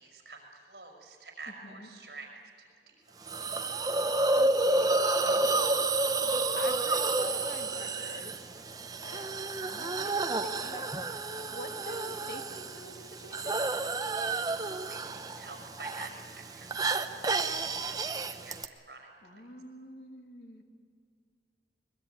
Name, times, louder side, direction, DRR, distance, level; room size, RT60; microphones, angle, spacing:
voice 1, 0.0-2.3 2.6-3.5 14.3-17.3 17.6-19.4, right 3 dB, 65° right, 1 dB, 5.5 m, -49 dB
Hiss, 3.3-18.7, right 2 dB, 20° right, 0.8 m, -30 dB
voice 2, 4.3-5.9 6.6-8.7 9.0-9.3 9.6-10.9 11.5-13.6 19.2-20.6, left 1 dB, 65° left, 3 dB, 2.6 m, -45 dB
22.0 x 21.5 x 9.2 m, 2.3 s
head